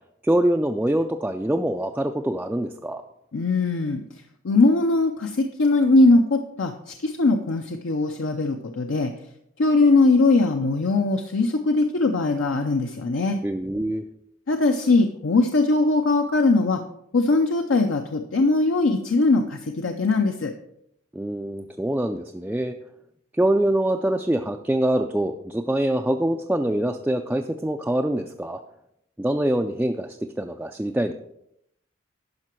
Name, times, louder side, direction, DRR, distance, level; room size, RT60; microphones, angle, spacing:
voice 1, 0.2-3.0 13.4-14.0 21.1-22.7 23.3-28.6 29.2-31.1, right 1 dB, 5° right, 3 dB, 0.3 m, -24 dB
voice 2, 3.3-4.0 4.4-9.1 9.6-13.4 14.5-16.8 17.1-20.5, left 3 dB, 65° left, 5 dB, 0.6 m, -20 dB
10.5 x 5.9 x 4.4 m, 0.77 s
head